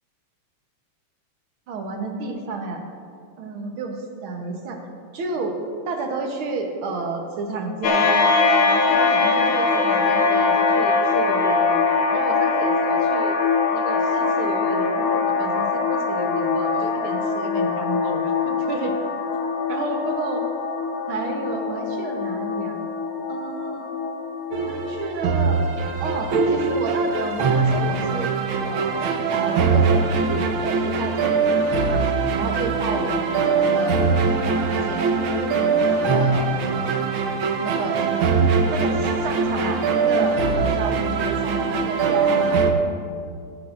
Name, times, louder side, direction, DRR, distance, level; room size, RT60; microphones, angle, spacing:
voice 1, 1.7-2.8 3.4-4.8 5.1-5.5 5.8-8.4 8.7-11.8 12.1-13.4 13.7-18.9 19.7-20.4 21.1-22.8 23.3-23.9 24.6-25.6 26.0-28.3 28.6-32.1 32.4-37.0 37.6-38.0 38.7-42.6, right 3 dB, 60° right, 3 dB, 1.5 m, -31 dB
sound 1, 7.8-25.1, left 4 dB, 75° left, 2.5 m, -22 dB
sound 2, 24.5-42.7, right 4 dB, 75° right, 1.1 m, -22 dB
17.0 x 12.0 x 2.6 m, 2.3 s
omnidirectional pair, 3.4 m